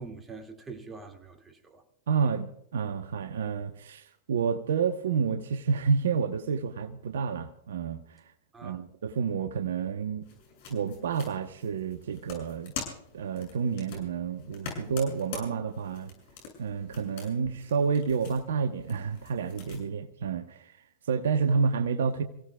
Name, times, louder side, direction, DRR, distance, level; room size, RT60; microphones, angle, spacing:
voice 1, 0.0-1.8 8.5-8.8, right 4 dB, 15° right, 2.2 m, -44 dB
voice 2, 2.1-8.0 8.6-10.3 10.7-12.7 13.1-16.1 16.6-20.7 21.1-22.2, right 6 dB, 70° right, 1.0 m, -29 dB
sound 1, 10.2-19.8, left 5 dB, 55° left, 7.0 m, -44 dB
28.5 x 16.5 x 2.3 m
figure-of-eight pair, 100°, 0 cm